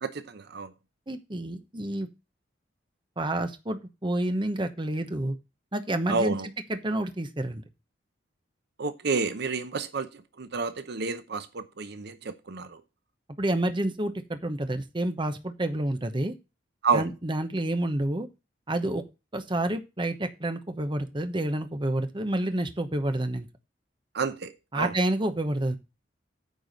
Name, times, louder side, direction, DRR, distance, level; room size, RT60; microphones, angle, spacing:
voice 1, 0.0-0.7 6.1-6.5 8.8-12.8 16.8-17.1 24.1-24.9, right 4 dB, 60° right, 0.7 m, -30 dB
voice 2, 1.1-2.1 3.2-5.4 5.7-6.3 6.7-7.6 13.4-16.3 16.9-18.3 18.7-19.0 19.3-23.5 24.7-25.8, right 1 dB, 25° right, 1.0 m, -29 dB
9.3 x 4.7 x 6.6 m
head